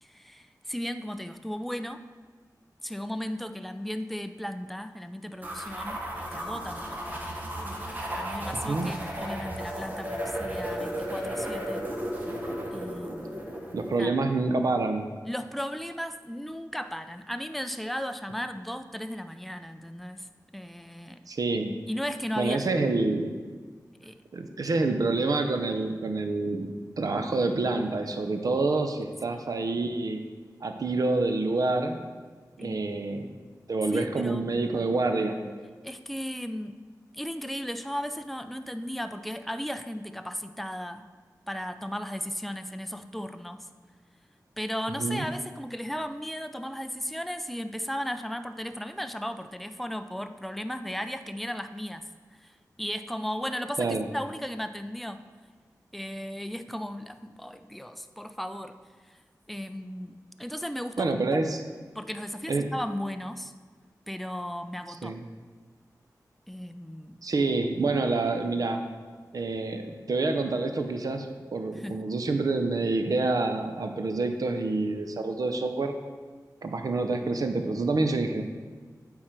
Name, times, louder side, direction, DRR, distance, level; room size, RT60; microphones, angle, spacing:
voice 1, 0.0-2.0 2.8-7.2 7.6-11.9 12.7-13.5 14.0-14.2 15.3-20.3 20.5-21.2 21.5-22.7 24.0-24.1 28.9-29.0 29.3-29.4 32.6-32.9 33.9-34.5 35.8-36.8 37.1-41.1 41.5-43.7 44.6-52.0 52.4-55.2 55.9-58.8 59.1-59.2 59.5-61.4 62.0-63.5 64.1-65.1 66.5-67.2 71.7-72.1, equal, ahead, 9 dB, 0.4 m, -36 dB
sound 1, 5.4-14.0, equal, 25° right, 1.0 m, -34 dB
voice 2, 8.5-8.9 13.7-15.1 21.3-21.7 22.4-23.4 24.3-30.2 30.6-32.0 32.6-33.3 33.7-35.4 45.0-45.2 53.8-54.1 61.0-61.6 62.5-62.7 65.0-65.2 67.2-68.8 69.3-75.9 76.6-78.4, right 3 dB, 60° right, 6 dB, 0.6 m, -27 dB
8.6 x 3.8 x 4.4 m, 1.5 s
wide cardioid pair, 85°, 7 cm